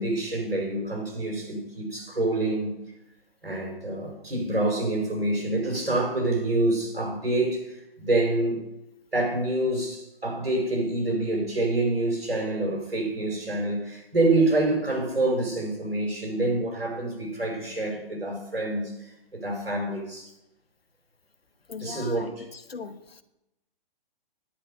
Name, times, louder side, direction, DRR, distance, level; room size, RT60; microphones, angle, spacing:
voice 1, 0.0-2.7 3.4-8.6 9.1-20.3 21.8-22.4, right 2 dB, 90° right, 5.0 m, -27 dB
voice 2, 21.7-23.2, left 5 dB, 90° left, 1.2 m, -40 dB
10.0 x 9.8 x 5.4 m
figure-of-eight pair, 135°, 29 cm